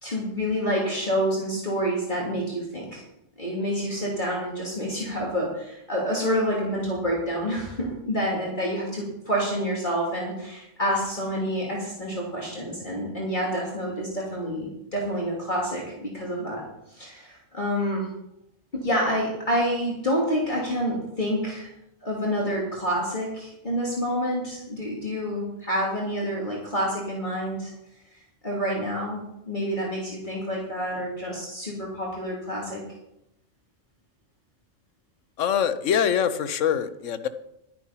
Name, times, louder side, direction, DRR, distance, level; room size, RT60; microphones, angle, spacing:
voice 1, 0.0-3.0 3.4-16.6 16.9-18.1 18.7-21.7 22.0-27.7 28.4-32.8, equal, 40° left, -4 dB, 2.8 m, -28 dB
voice 2, 35.4-37.3, left 8 dB, 90° left, 12 dB, 1.2 m, -24 dB
12.0 x 9.5 x 5.7 m, 0.84 s
omnidirectional pair, 1.2 m